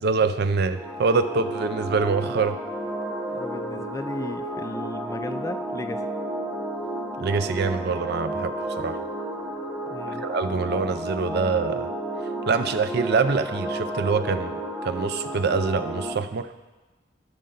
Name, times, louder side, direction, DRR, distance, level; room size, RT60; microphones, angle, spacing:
voice 1, 0.0-2.6 7.2-9.0 10.1-11.9 12.5-16.5, right 4 dB, 60° right, 10 dB, 0.5 m, -25 dB
sound 1, 0.7-16.1, right 1 dB, ahead, 1.0 m, -32 dB
voice 2, 3.3-6.1 9.9-10.3, left 2 dB, 15° left, 9 dB, 0.3 m, -35 dB
13.5 x 5.3 x 3.9 m, 1.2 s
head